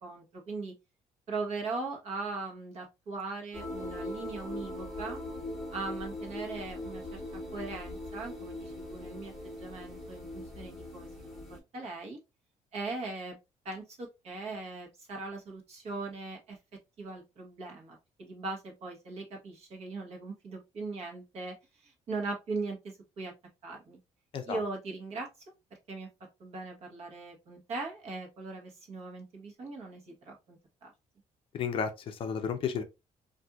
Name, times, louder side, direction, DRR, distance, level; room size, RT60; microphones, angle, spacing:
voice 1, 0.0-0.7 1.3-5.2 5.7-11.4 11.7-12.2 12.7-13.4 13.6-16.6 17.0-23.3 23.6-24.0 24.5-25.3 25.9-26.1 26.4-30.9, right 3 dB, 50° right, 1.2 m, -40 dB
sound 1, 3.5-11.6, left 1 dB, ahead, 1.2 m, -41 dB
voice 2, 31.5-32.8, left 6 dB, 45° left, 0.5 m, -32 dB
4.1 x 2.6 x 2.3 m
cardioid pair, 175°, 13 cm